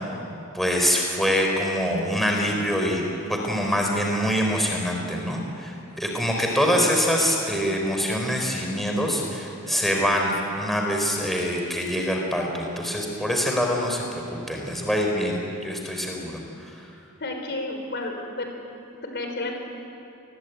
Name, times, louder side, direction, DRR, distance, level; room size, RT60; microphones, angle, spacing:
voice 1, 0.5-3.0 3.3-14.2 14.5-16.9, equal, ahead, 0 dB, 3.8 m, -25 dB
voice 2, 17.2-18.5 19.0-19.5, left 2 dB, 50° left, 3 dB, 4.3 m, -32 dB
28.5 x 21.0 x 9.1 m, 2.7 s
head